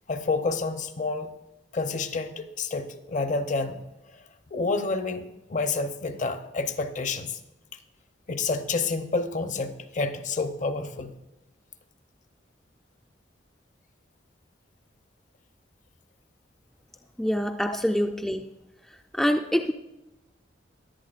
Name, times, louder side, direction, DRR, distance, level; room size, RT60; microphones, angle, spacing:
voice 1, 0.1-1.3 1.7-3.8 4.1-4.2 4.5-5.2 5.5-7.4 7.7-7.8 8.3-11.1 17.7-17.8, left 3 dB, 40° left, 9 dB, 0.6 m, -29 dB
voice 2, 17.2-18.5 19.1-19.7, equal, 5° left, 3 dB, 0.3 m, -25 dB
16.5 x 11.0 x 2.4 m, 0.95 s
head